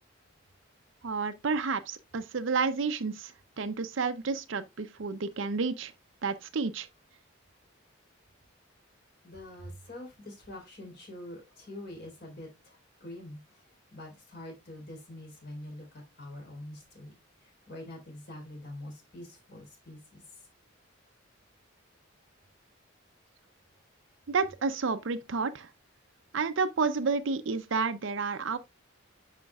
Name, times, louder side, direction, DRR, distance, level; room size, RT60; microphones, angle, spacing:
voice 1, 1.0-5.9 6.2-6.9 24.3-25.7 26.3-28.6, right 4 dB, 65° right, 0.6 m, -30 dB
voice 2, 9.2-15.9 16.2-17.2 17.4-20.5, left 1 dB, 50° left, 3.7 m, -45 dB
9.3 x 5.9 x 2.3 m
head